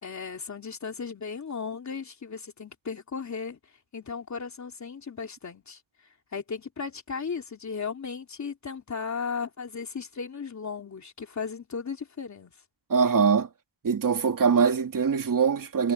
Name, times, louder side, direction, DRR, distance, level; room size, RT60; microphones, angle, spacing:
voice 1, 0.0-3.6 3.9-5.8 6.3-12.5, left 5 dB, 40° left, 3.3 m, -36 dB
voice 2, 12.9-13.5 13.8-15.9, right 6 dB, 45° right, 3.0 m, -23 dB
wide cardioid pair, 135°, 44 cm